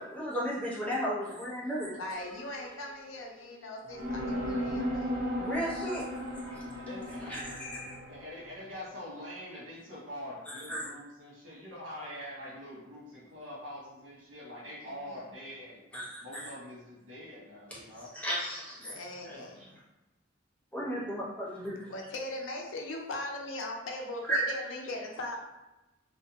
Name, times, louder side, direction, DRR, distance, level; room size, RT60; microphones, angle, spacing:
voice 1, 0.1-1.9 5.4-6.1 6.5-6.6 7.3-7.9 10.7-10.9 15.9-16.2 18.1-18.9 19.3-19.4 20.7-21.9, equal, 5° left, -7 dB, 0.7 m, -35 dB
voice 2, 1.9-5.3 14.8-15.2 18.8-19.6 21.9-25.4, left 2 dB, 90° left, 1 dB, 0.5 m, -40 dB
sound 1, 2.1-3.3 3.9-8.6, equal, 45° right, 0.6 m, -36 dB
voice 3, 6.7-7.2 8.1-15.8 16.2-18.1 19.2-19.7, left 1 dB, 85° right, -6 dB, 1.1 m, -44 dB
2.6 x 2.2 x 2.7 m, 1.0 s
head